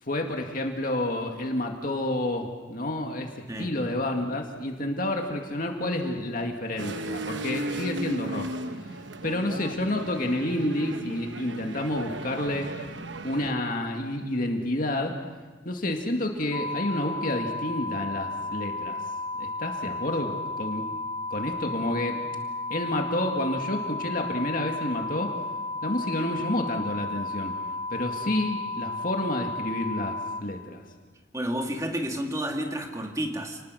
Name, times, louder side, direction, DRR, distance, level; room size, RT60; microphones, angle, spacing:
voice 1, 0.0-3.3 3.6-8.5 8.9-12.7 13.2-15.2 15.7-19.0 19.4-20.8 21.3-22.2 22.7-25.3 25.8-27.5 27.9-30.8, left 1 dB, 45° left, 2 dB, 2.0 m, -29 dB
sound 1, 6.8-13.5, right 1 dB, 70° right, 1.1 m, -36 dB
sound 2, 16.5-30.4, left 2 dB, 20° left, 0.6 m, -33 dB
voice 2, 31.3-33.6, equal, 15° right, 2 dB, 2.3 m, -30 dB
29.0 x 20.5 x 6.4 m, 1.3 s
head